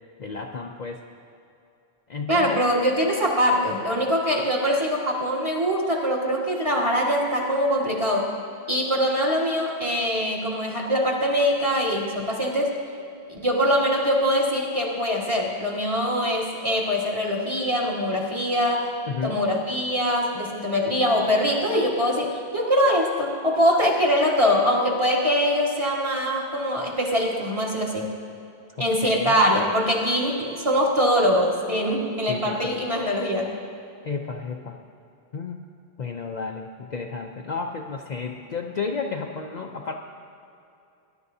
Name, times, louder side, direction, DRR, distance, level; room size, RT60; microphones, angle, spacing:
voice 1, 0.2-1.0 2.1-2.6 19.1-19.4 28.7-29.4 32.3-32.8 34.0-34.8 35.3-35.6 36.0-40.0, left 5 dB, 50° left, 2 dB, 0.6 m, -32 dB
voice 2, 2.3-8.3 8.7-12.7 13.3-18.9 19.2-28.1 28.8-33.5, equal, 30° right, -3 dB, 1.6 m, -23 dB
19.5 x 11.5 x 2.7 m, 2.7 s
omnidirectional pair, 1.0 m